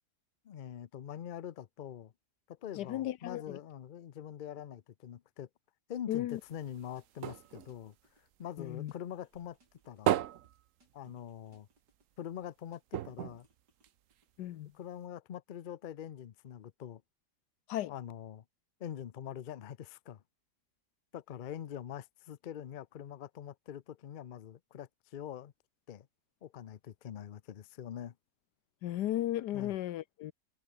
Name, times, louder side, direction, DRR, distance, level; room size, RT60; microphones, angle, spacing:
voice 1, 0.4-2.1 2.5-5.5 5.9-7.9 8.4-9.6 9.9-10.2 10.9-11.7 12.2-13.5 14.7-17.0 17.9-18.4 18.8-20.2 21.1-25.5 25.9-26.1 26.4-28.1 29.5-29.7, left 10 dB, 70° left, 0.4 m, -44 dB
voice 2, 2.8-3.6 6.1-6.4 8.6-8.9 14.4-14.7 17.7-17.9 28.8-30.3, left 13 dB, 90° left, 1.4 m, -35 dB
sound 1, 6.3-9.0 9.3-11.6 11.9-12.0 12.3-12.4 12.9-14.4 15.0-15.1, right 12 dB, 60° right, 1.0 m, -37 dB
sound 2, 7.0-8.6 8.9-10.5 10.8-12.4 12.7-14.3, right 2 dB, 90° right, 8.2 m, -72 dB
omnidirectional pair, 1.7 m